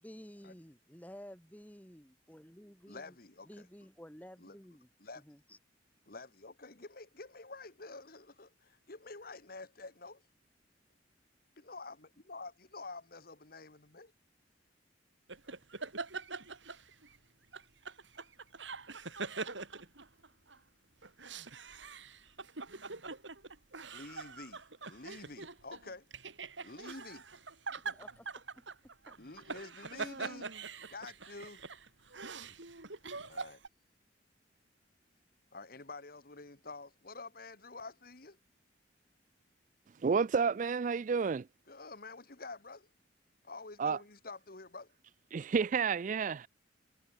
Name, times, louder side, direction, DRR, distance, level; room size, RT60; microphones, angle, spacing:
voice 1, 0.0-3.2 3.5-4.9 5.2-5.6 27.8-28.3 28.6-29.4, equal, 10° left, 3.5 m, -53 dB
voice 2, 2.9-3.7 4.4-4.6 5.0-5.2 6.1-10.2 11.6-14.1 23.9-26.1 26.6-27.3 29.2-30.5 30.9-31.6 33.2-33.6 35.5-38.4 41.7-42.9 43.4-45.0, left 3 dB, 50° left, 1.7 m, -48 dB
sound 1, 15.3-17.2 17.5-20.6 21.0-33.7, right 4 dB, 80° right, 3.5 m, -44 dB
voice 3, 40.0-41.5 43.8-44.0 45.3-46.5, right 5 dB, 40° right, 0.4 m, -30 dB
head